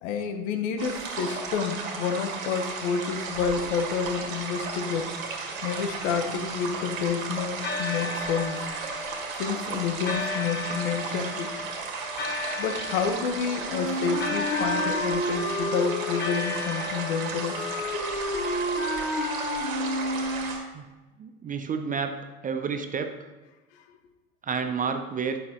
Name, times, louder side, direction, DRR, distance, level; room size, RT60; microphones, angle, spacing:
voice 1, 0.0-5.1 5.6-8.7 9.4-11.5 12.6-17.7, left 6 dB, 60° left, 7 dB, 1.2 m, -29 dB
sound 1, 0.8-20.6, right 4 dB, 80° right, 1.8 m, -35 dB
sound 2, 5.6-7.1 7.6-18.2, left 2 dB, 25° left, 1.1 m, -36 dB
Wind instrument woodwind instrument, 13.7-20.7, left 1 dB, 80° left, 2.5 m, -30 dB
voice 2, 21.2-22.2 22.4-23.2 24.4-25.4, right 6 dB, 20° right, 8 dB, 0.5 m, -30 dB
12.0 x 6.3 x 3.0 m, 1.2 s
hypercardioid pair, 85°, 40 cm